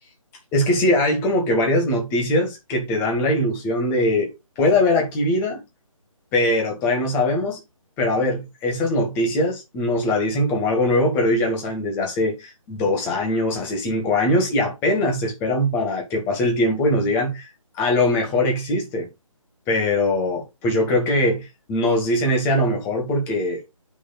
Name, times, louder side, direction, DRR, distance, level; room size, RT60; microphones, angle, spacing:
voice 1, 0.5-5.6 6.3-7.6 8.0-17.5 17.7-19.1 19.7-23.7, left 1 dB, 15° left, 1.8 m, -21 dB
9.1 x 6.1 x 2.4 m
figure-of-eight pair, 150°, 18 cm